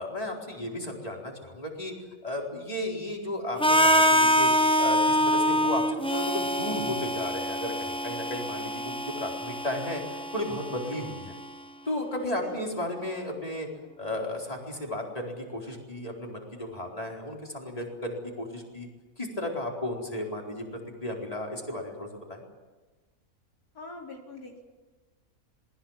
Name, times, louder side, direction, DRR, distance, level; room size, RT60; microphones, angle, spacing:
voice 1, 0.0-1.9 2.2-4.5 4.8-10.0 10.3-11.3 11.9-13.7 14.0-18.9 19.2-22.4, left 1 dB, 25° left, -1 dB, 4.6 m, -34 dB
Harmonica, 3.6-11.5, equal, 5° left, 0.6 m, -25 dB
voice 2, 23.7-24.6, left 3 dB, 80° left, 0 dB, 4.4 m, -42 dB
26.5 x 20.5 x 7.5 m, 1.3 s
omnidirectional pair, 1.6 m